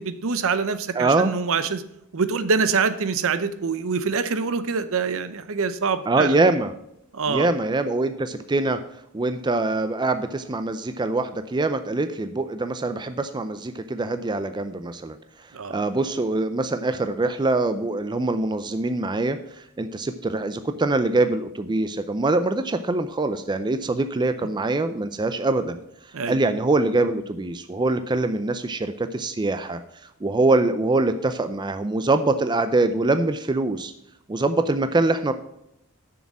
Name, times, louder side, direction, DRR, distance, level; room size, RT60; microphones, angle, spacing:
voice 1, 0.0-1.8 2.1-6.4 7.1-7.5 15.5-15.8 26.1-26.4, right 5 dB, 65° right, 12 dB, 0.7 m, -25 dB
voice 2, 0.9-1.3 6.1-6.7 7.3-8.8 9.1-15.2 15.7-25.8 26.3-29.8 30.2-33.9 34.3-35.3, right 2 dB, 20° right, 9 dB, 0.4 m, -23 dB
6.9 x 6.4 x 7.3 m, 0.78 s
head